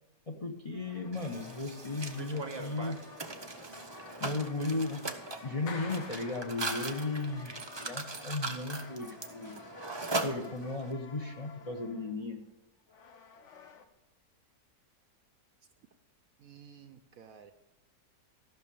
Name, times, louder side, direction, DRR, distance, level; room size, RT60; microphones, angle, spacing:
voice 1, 0.3-3.0 4.2-9.6 10.2-12.4, left 3 dB, 30° left, 2 dB, 0.8 m, -36 dB
sound 1, 0.7-13.9, left 5 dB, 50° left, 1.0 m, -54 dB
Mechanisms, 1.1-10.9, right 3 dB, 30° right, 0.5 m, -40 dB
Clapping, 5.7-7.4, left 5 dB, 90° left, 1.9 m, -46 dB
voice 2, 16.4-17.5, right 7 dB, 65° right, 8 dB, 1.0 m, -53 dB
14.5 x 6.1 x 6.9 m, 1.0 s
omnidirectional pair, 1.9 m